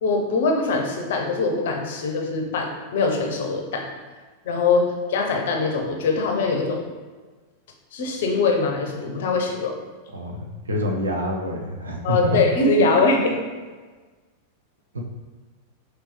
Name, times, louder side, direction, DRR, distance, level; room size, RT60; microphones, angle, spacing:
voice 1, 0.0-3.9 4.5-6.8 7.9-9.8 12.0-13.4, left 3 dB, 55° left, 2 dB, 0.7 m, -22 dB
voice 2, 10.1-12.4 14.9-15.0, equal, 75° right, 0 dB, 0.7 m, -27 dB
5.3 x 3.0 x 3.2 m, 1.4 s
figure-of-eight pair, 90°, 0 cm